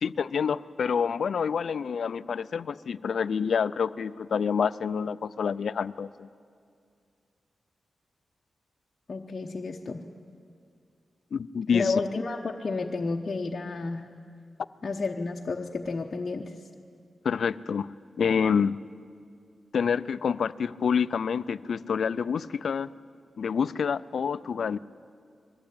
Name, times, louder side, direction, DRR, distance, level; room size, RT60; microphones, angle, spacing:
voice 1, 0.0-6.3 11.3-11.9 17.2-17.9 18.2-18.8 19.7-22.9 23.4-24.8, left 6 dB, 75° left, 16 dB, 0.4 m, -27 dB
voice 2, 9.1-10.0 11.7-14.1 14.8-16.5, left 3 dB, 50° left, 0 dB, 0.9 m, -31 dB
21.5 x 15.0 x 8.6 m, 2.3 s
cardioid pair, 85°, 0 cm